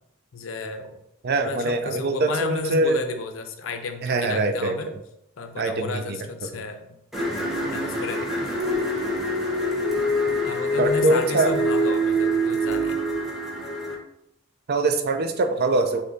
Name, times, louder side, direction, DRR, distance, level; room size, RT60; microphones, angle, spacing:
voice 1, 0.3-1.0 1.4-4.9 5.4-6.9 7.2-8.5 10.4-13.2, left 3 dB, 85° left, 7 dB, 0.6 m, -33 dB
voice 2, 1.2-3.0 4.0-4.7 5.6-6.2 10.8-11.5 14.7-16.0, right 2 dB, 55° right, 7 dB, 0.4 m, -23 dB
sound 1, 7.1-13.9, equal, ahead, 1.0 m, -25 dB
6.6 x 2.7 x 2.6 m, 0.81 s
head